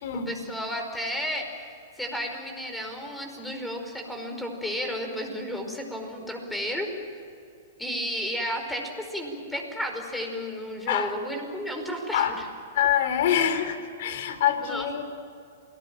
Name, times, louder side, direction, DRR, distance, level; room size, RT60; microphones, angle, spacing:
voice 1, 0.3-6.9 7.8-12.4 14.6-15.0, equal, 5° left, 4 dB, 5.1 m, -33 dB
voice 2, 12.7-15.0, left 9 dB, 65° left, 10 dB, 3.3 m, -25 dB
28.0 x 20.0 x 9.0 m, 2.4 s
hypercardioid pair, 130°, 0 cm